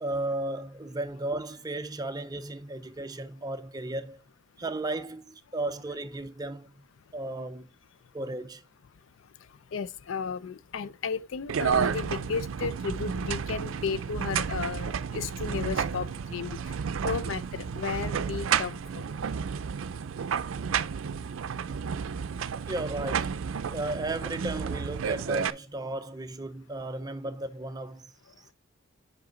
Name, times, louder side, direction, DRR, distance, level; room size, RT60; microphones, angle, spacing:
voice 1, 0.0-4.2 4.6-6.7 7.1-7.7 8.1-8.6 22.7-23.5 23.7-28.1, right 2 dB, 20° right, 0.6 m, -34 dB
voice 2, 9.7-16.6 17.0-18.8, left 5 dB, 80° left, 0.4 m, -34 dB
sound 1, 11.5-25.5, right 7 dB, 90° right, 0.4 m, -31 dB
7.8 x 5.2 x 3.8 m
head